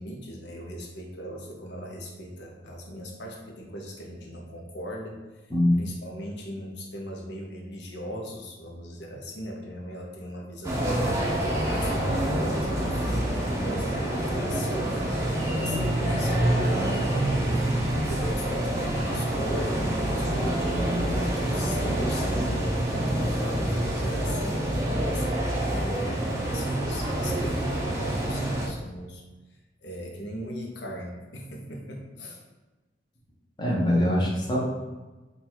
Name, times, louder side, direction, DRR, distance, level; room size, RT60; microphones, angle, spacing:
voice 1, 0.0-5.4 5.7-11.3 11.7-17.8 18.1-25.3 25.6-32.4, equal, 70° left, -1 dB, 0.7 m, -38 dB
sound 1, 10.6-28.7, right 1 dB, 15° right, 0.6 m, -27 dB
voice 2, 33.6-34.6, left 1 dB, 25° left, -4 dB, 0.8 m, -23 dB
3.9 x 2.3 x 4.3 m, 1.2 s
head